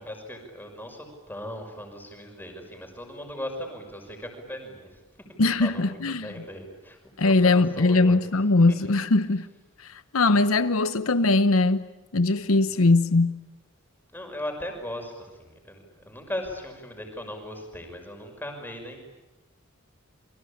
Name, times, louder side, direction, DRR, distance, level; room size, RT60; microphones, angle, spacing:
voice 1, 0.0-5.3 5.6-8.2 8.7-8.8 12.5-13.0 14.1-19.0, left 1 dB, 10° left, 5.7 m, -38 dB
voice 2, 5.4-6.3 7.2-9.5 9.9-11.8 12.1-13.4, left 3 dB, 85° left, 1.0 m, -21 dB
29.0 x 23.5 x 8.6 m
head